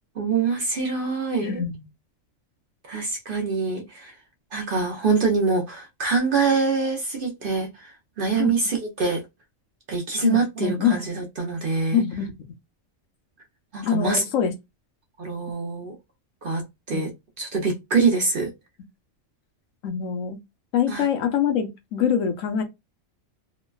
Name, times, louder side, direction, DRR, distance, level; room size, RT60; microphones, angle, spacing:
voice 1, 0.2-1.6 2.9-4.1 4.5-9.2 9.9-12.0 13.7-14.2 15.2-16.0 16.4-17.1 17.4-18.5 20.9-21.1, right 4 dB, 55° right, 0.7 m, -24 dB
voice 2, 1.4-1.8 8.4-8.5 10.2-11.0 11.9-12.3 13.8-14.5 16.9-17.0 19.8-20.4 20.7-22.6, left 8 dB, 75° left, 1.0 m, -24 dB
3.0 x 2.1 x 2.2 m
omnidirectional pair, 1.4 m